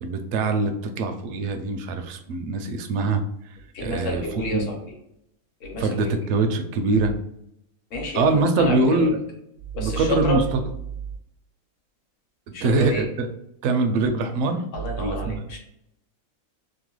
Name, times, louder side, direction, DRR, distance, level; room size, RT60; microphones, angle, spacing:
voice 1, 0.0-3.2 3.8-4.2 4.5-4.7 5.8-7.1 8.1-9.2 9.8-10.6 12.6-13.3 13.6-14.6 15.0-15.4, right 3 dB, 70° right, 5 dB, 0.9 m, -23 dB
voice 2, 3.7-4.8 5.6-6.3 7.9-9.1 9.7-10.4 12.5-13.0 14.7-15.6, left 1 dB, 65° left, 1 dB, 1.2 m, -29 dB
2.9 x 2.2 x 3.0 m, 0.77 s
omnidirectional pair, 1.5 m